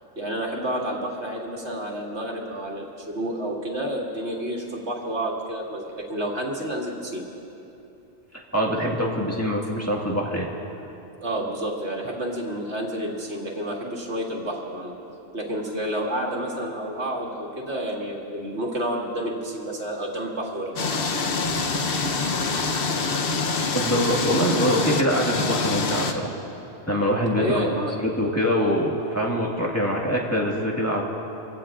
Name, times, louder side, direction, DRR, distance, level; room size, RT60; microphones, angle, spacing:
voice 1, 0.2-7.2 11.2-15.0 15.3-21.0 27.4-28.0, right 1 dB, 85° right, -2 dB, 2.1 m, -30 dB
voice 2, 8.5-10.5 23.7-26.3 26.9-31.0, equal, 15° left, -3 dB, 1.8 m, -24 dB
sound 1, 20.8-26.1, left 4 dB, 60° left, 1.1 m, -25 dB
25.0 x 16.5 x 2.5 m, 2.8 s
omnidirectional pair, 1.1 m